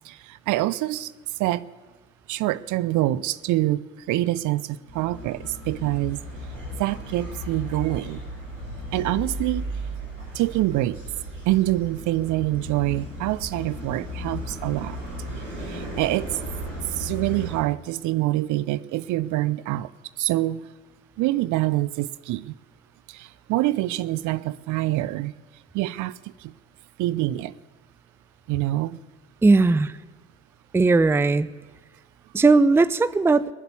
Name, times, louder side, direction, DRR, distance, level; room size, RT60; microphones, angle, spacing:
voice 1, 0.0-1.1 1.4-1.6 2.3-6.2 6.8-8.2 8.9-9.6 10.3-11.0 11.5-15.0 15.6-16.3 17.0-19.9 20.2-20.6 21.2-22.5 23.1-25.3 25.7-26.5 27.0-27.5 28.5-29.0, right 16 dB, 55° right, 18 dB, 0.6 m, -25 dB
sound 1, 4.9-17.6, equal, 90° right, 2.5 m, -35 dB
voice 2, 29.4-29.9 30.7-31.5 32.3-33.5, right 3 dB, 5° right, 17 dB, 0.4 m, -18 dB
19.5 x 7.9 x 8.4 m, 1.3 s
figure-of-eight pair, 45°, 36 cm